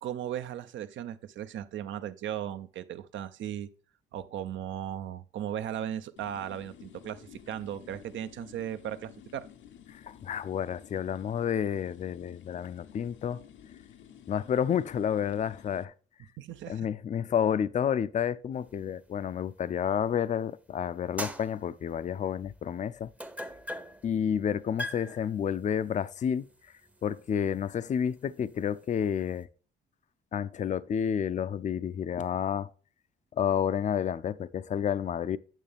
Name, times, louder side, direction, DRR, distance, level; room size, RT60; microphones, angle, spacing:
voice 1, 0.0-3.7 4.1-9.5 16.4-16.9, right 10 dB, 70° right, 0.7 m, -37 dB
sound 1, 6.2-15.8, left 9 dB, 70° left, 0.7 m, -53 dB
voice 2, 9.9-13.4 14.3-15.9 16.7-23.1 24.0-26.5 27.0-29.5 30.3-32.7 33.3-35.4, left 8 dB, 40° left, 0.4 m, -30 dB
sound 2, 18.6-20.5 20.9-29.4, equal, 5° right, 0.7 m, -43 dB
9.1 x 6.4 x 3.4 m
cardioid pair, 90°, 20 cm